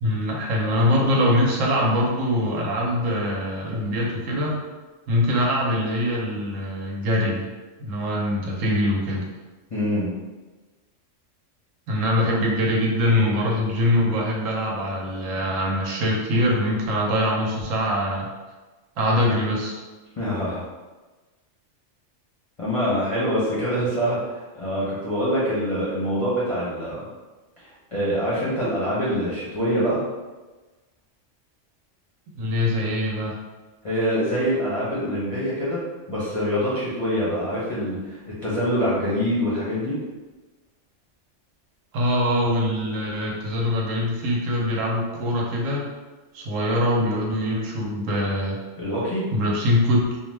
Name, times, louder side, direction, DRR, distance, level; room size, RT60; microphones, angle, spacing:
voice 1, 0.0-4.6 5.1-7.5 7.8-9.2 11.9-18.3 19.0-19.8 32.4-33.3 41.9-45.9 46.3-48.6 49.3-50.1, left 1 dB, 85° right, -2 dB, 1.0 m, -23 dB
voice 2, 9.7-10.2 20.2-20.6 22.6-24.2 24.6-27.0 27.6-30.0 33.8-35.8 36.1-40.0 48.8-49.3, equal, 35° left, -9 dB, 0.6 m, -25 dB
2.5 x 2.2 x 3.2 m, 1.2 s
omnidirectional pair, 1.3 m